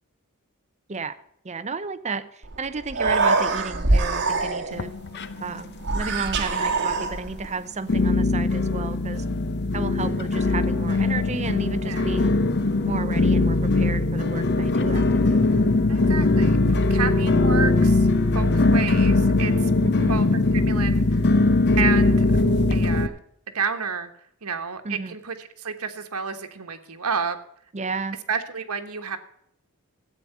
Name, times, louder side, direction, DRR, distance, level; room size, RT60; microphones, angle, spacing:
voice 1, 1.4-4.9 5.4-9.2 9.7-12.3 12.9-15.5 19.8-20.2 24.8-25.2 27.7-28.2, right 4 dB, 30° right, 13 dB, 0.7 m, -33 dB
Human voice, 2.4-2.5 2.8-4.9 5.8-7.5, right 3 dB, 55° right, 1.7 m, -23 dB
sound 1, 4.7-5.7 5.9-6.6 7.1-7.2 7.9-23.1, left 2 dB, 50° left, 0.8 m, -21 dB
voice 2, 15.9-18.1 18.3-19.7 20.1-20.3 20.5-21.2 21.7-22.3 22.7-23.2 23.5-24.1 24.4-27.4 28.3-29.2, right 6 dB, 75° right, 6 dB, 1.4 m, -30 dB
13.0 x 8.6 x 5.5 m, 0.73 s
head